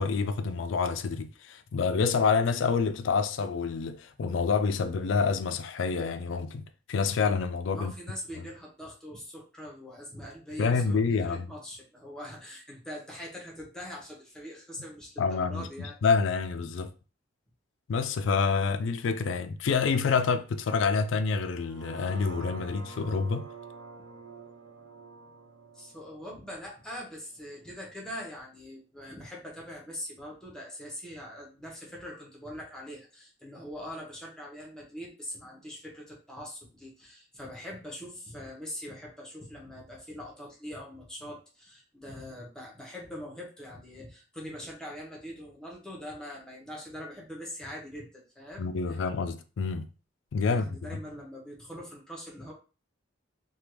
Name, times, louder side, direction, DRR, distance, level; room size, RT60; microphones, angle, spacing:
voice 1, 0.0-6.6 6.9-7.9 10.6-11.5 15.2-15.7 16.0-16.9 17.9-23.5 48.6-49.9 50.3-51.0, left 5 dB, 70° left, 0.4 m, -27 dB
voice 2, 7.7-16.0 24.0-24.1 25.7-49.0 50.5-52.5, equal, 5° left, 0.8 m, -43 dB
sound 1, 21.5-27.6 28.1-28.2, right 4 dB, 60° right, 0.6 m, -47 dB
3.3 x 2.3 x 2.9 m
head